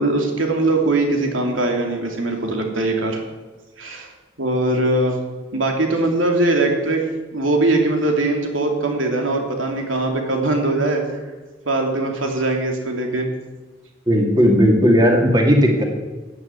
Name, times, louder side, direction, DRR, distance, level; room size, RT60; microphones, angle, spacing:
voice 1, 0.0-3.2 3.8-4.1 4.4-5.2 5.5-7.0 7.3-11.0 11.6-13.3, right 2 dB, 90° right, 2 dB, 3.1 m, -21 dB
voice 2, 14.1-15.8, equal, 20° right, 1 dB, 2.3 m, -15 dB
16.5 x 9.4 x 8.2 m, 1.3 s
head